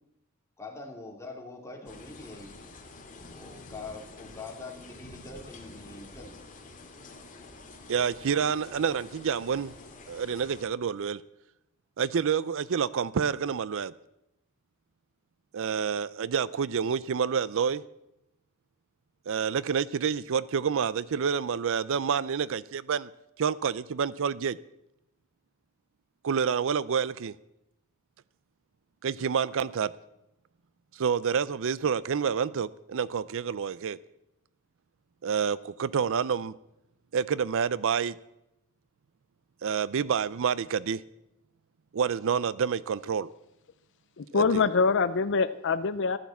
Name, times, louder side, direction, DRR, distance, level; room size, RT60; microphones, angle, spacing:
voice 1, 0.6-2.5 3.3-6.3, left 3 dB, 15° left, 2.8 m, -43 dB
sound 1, 1.9-10.6, left 2 dB, 40° left, 2.2 m, -48 dB
voice 2, 7.9-9.7 10.1-11.2 12.0-13.9 15.5-17.8 19.3-23.1 23.4-24.6 26.2-27.3 29.0-29.9 31.0-34.0 35.2-36.5 37.1-38.1 39.6-41.0 41.9-43.3 44.3-44.6, right 6 dB, 65° right, 0.4 m, -28 dB
voice 3, 44.2-46.2, left 4 dB, 55° left, 0.6 m, -24 dB
14.5 x 11.5 x 7.1 m
head